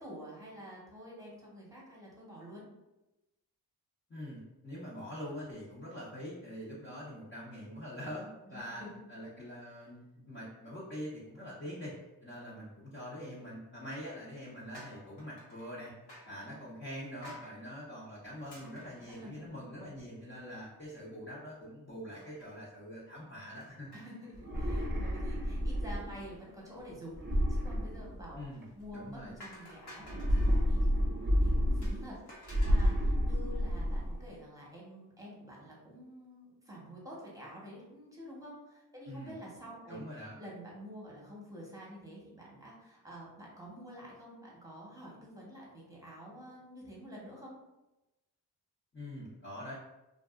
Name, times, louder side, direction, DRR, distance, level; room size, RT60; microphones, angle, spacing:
voice 1, 0.0-2.7 6.8-7.0 8.5-8.9 16.2-16.6 19.1-19.5 23.9-47.5, equal, 10° right, -4 dB, 1.1 m, -49 dB
voice 2, 4.1-8.8 9.1-15.9 16.2-23.9 28.3-28.7 28.9-29.3 39.1-39.3 39.9-40.4 48.9-49.7, equal, 30° left, -9 dB, 0.9 m, -44 dB
sound 1, 14.7-15.7 16.1-16.4 17.2-17.5 18.5-19.8 20.2-20.3 20.5-20.6 22.1-22.6 23.5-24.4 24.6-25.0 28.5-28.8 29.4-30.6 31.8-33.1, left 1 dB, 65° left, 1.1 m, -52 dB
sound 2, 24.3-26.3 27.1-28.6 30.0-32.2 32.5-34.2, equal, 25° right, 0.6 m, -30 dB
2.5 x 2.4 x 2.4 m, 1.0 s
cardioid pair, 45°, 42 cm